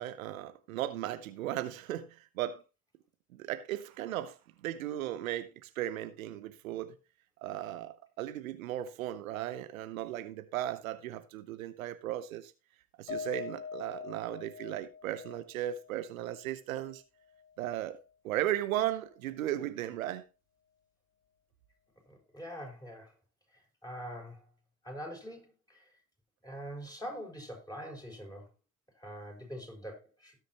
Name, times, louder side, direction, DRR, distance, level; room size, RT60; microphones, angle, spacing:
voice 1, 0.0-2.6 3.3-4.4 4.6-7.0 7.4-12.5 13.0-17.0 17.6-18.0 18.2-20.2, right 13 dB, 85° right, 0.7 m, -36 dB
Piano, 13.1-17.6 17.9-18.1 18.5-18.6, left 6 dB, 90° left, 1.3 m, -44 dB
voice 2, 22.1-23.1 23.5-24.4 24.8-26.0 26.4-28.5 29.0-30.4, equal, 10° left, 5.9 m, -44 dB
17.5 x 6.6 x 2.9 m
hypercardioid pair, 40°, 40 cm